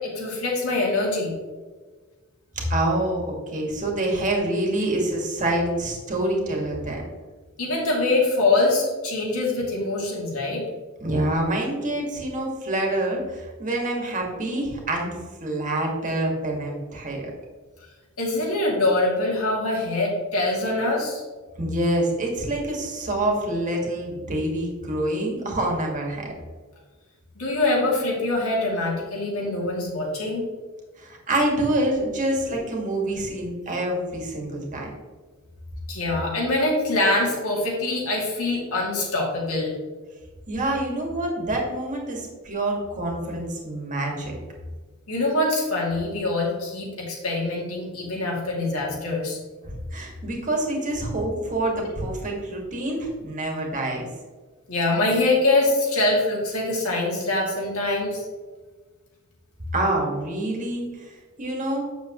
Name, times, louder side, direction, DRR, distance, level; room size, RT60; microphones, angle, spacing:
voice 1, 0.0-1.3 7.6-10.6 18.2-21.2 27.4-30.4 35.9-39.7 45.1-49.4 54.7-58.2, left 2 dB, 75° left, -2 dB, 2.6 m, -24 dB
voice 2, 2.7-7.0 11.0-17.3 21.6-26.2 31.0-34.9 40.5-44.3 49.6-54.1 59.7-61.1 61.4-61.8, right 1 dB, 35° right, 0 dB, 2.0 m, -26 dB
8.7 x 6.8 x 3.1 m, 1.4 s
head